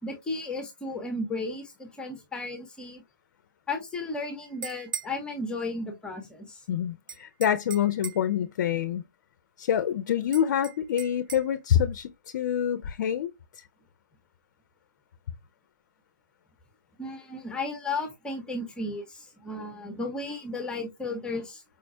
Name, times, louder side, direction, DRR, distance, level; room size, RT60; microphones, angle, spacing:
voice 1, 0.0-3.0 3.7-6.6 17.0-21.6, left 2 dB, 10° left, 0.6 m, -34 dB
sound 1, 4.4-5.2 7.1-8.3 10.3-11.5, right 8 dB, 85° right, 0.4 m, -39 dB
voice 2, 6.7-9.0 9.6-13.6, left 9 dB, 55° left, 0.4 m, -26 dB
4.8 x 2.1 x 2.6 m
hypercardioid pair, 135°, 10 cm